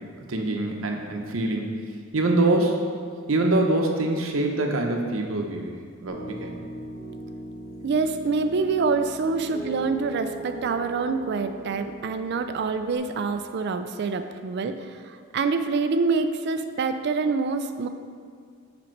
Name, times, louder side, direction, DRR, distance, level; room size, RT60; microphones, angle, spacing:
voice 1, 0.3-1.8 2.1-2.8 3.3-5.7 6.0-6.5, right 2 dB, 75° right, 2 dB, 0.8 m, -24 dB
Piano, 6.1-13.0, right 2 dB, 60° left, 1.9 m, -39 dB
voice 2, 7.8-17.9, right 4 dB, 55° right, 8 dB, 0.4 m, -26 dB
7.6 x 5.2 x 4.6 m, 2.1 s
head